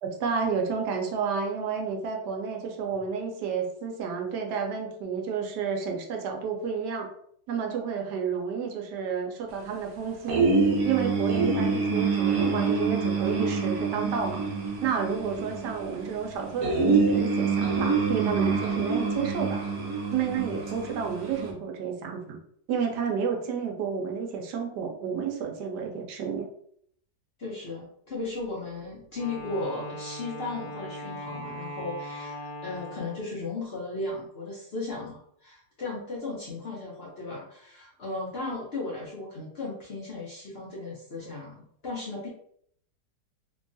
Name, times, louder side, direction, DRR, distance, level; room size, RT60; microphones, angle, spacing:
voice 1, 0.0-7.1 7.5-10.5 10.8-14.4 14.8-19.6 20.1-22.4 22.7-26.5, right 6 dB, 85° right, 2 dB, 1.2 m, -31 dB
sound 1, 10.3-21.5, right 4 dB, 65° right, 1.1 m, -26 dB
voice 2, 27.4-41.6 41.8-42.3, left 3 dB, 55° left, -5 dB, 0.7 m, -36 dB
Wind instrument woodwind instrument, 29.1-33.5, equal, 85° left, 0.3 m, -39 dB
3.2 x 2.2 x 2.6 m, 0.65 s
omnidirectional pair, 1.8 m